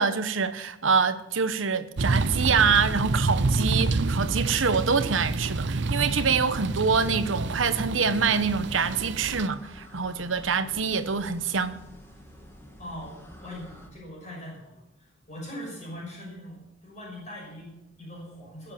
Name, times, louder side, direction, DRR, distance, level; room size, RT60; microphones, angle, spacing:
voice 1, 0.0-11.8, right 5 dB, 80° right, 1.0 m, -25 dB
sound 1, 2.0-9.5, right 3 dB, 65° right, 0.6 m, -28 dB
sound 2, 8.4-13.9, equal, 15° left, 2.4 m, -48 dB
voice 2, 12.8-18.7, equal, 40° left, 6.3 m, -41 dB
20.0 x 8.2 x 7.1 m
head